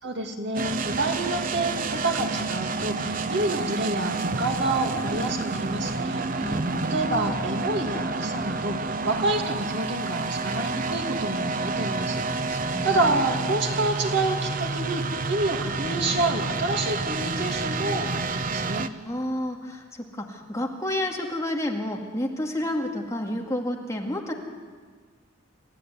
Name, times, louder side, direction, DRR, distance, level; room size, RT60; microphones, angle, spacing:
voice 1, 0.0-6.6 6.9-12.6 12.8-18.9, right 2 dB, 60° right, 3 dB, 2.6 m, -28 dB
sound 1, 0.5-18.9, right 3 dB, 45° right, 0.9 m, -29 dB
voice 2, 6.4-6.9 12.4-13.1 19.0-24.3, left 1 dB, 15° left, 1 dB, 2.1 m, -30 dB
28.0 x 14.0 x 9.6 m, 1.5 s
head